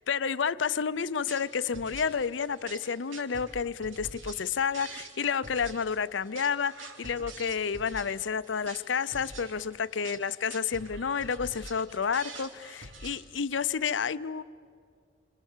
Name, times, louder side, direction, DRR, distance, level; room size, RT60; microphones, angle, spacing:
voice 1, 0.0-14.4, left 6 dB, 70° left, 16 dB, 0.6 m, -30 dB
sound 1, 1.1-13.2, right 2 dB, 85° right, 2.6 m, -46 dB
28.5 x 26.5 x 7.4 m, 2.2 s
head